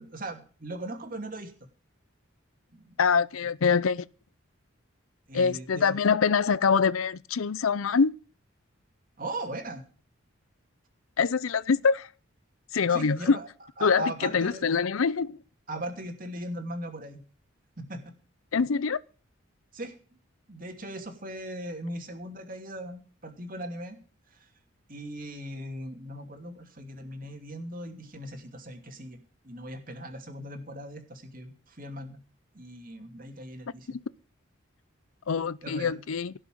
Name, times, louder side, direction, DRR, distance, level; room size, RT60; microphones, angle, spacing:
voice 1, 0.0-1.5 2.7-3.0 5.3-5.9 9.2-9.8 12.9-13.5 13.8-14.6 15.7-17.2 17.8-18.1 19.7-20.0 20.5-24.0 24.3-24.5 24.9-29.2 29.4-32.2 32.5-34.0 35.6-36.0, right 1 dB, 40° right, 2.7 m, -39 dB
voice 2, 3.0-4.0 5.3-8.1 11.2-12.1 12.7-13.4 13.8-15.4 18.5-19.0 33.9-34.0 35.3-36.3, left 5 dB, 80° left, 0.5 m, -24 dB
17.0 x 6.5 x 7.7 m
head